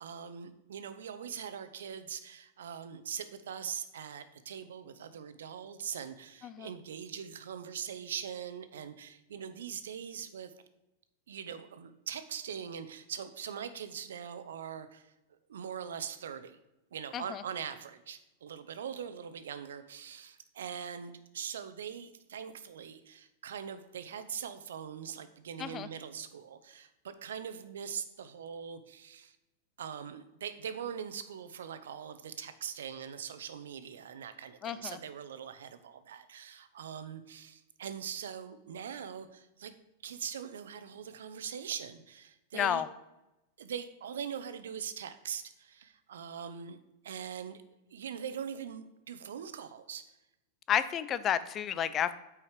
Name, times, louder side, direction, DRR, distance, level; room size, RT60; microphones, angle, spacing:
voice 1, 0.0-10.5 11.3-15.0 15.5-16.6 16.9-29.4 29.8-39.7 40.0-42.8 43.6-46.8 47.0-47.6 47.9-50.0, right 8 dB, 90° right, 11 dB, 0.8 m, -42 dB
voice 2, 34.6-35.0 42.5-42.9 50.7-52.1, left 9 dB, 30° left, 14 dB, 0.5 m, -31 dB
8.6 x 4.9 x 5.0 m, 0.94 s
supercardioid pair, 135°, 0 cm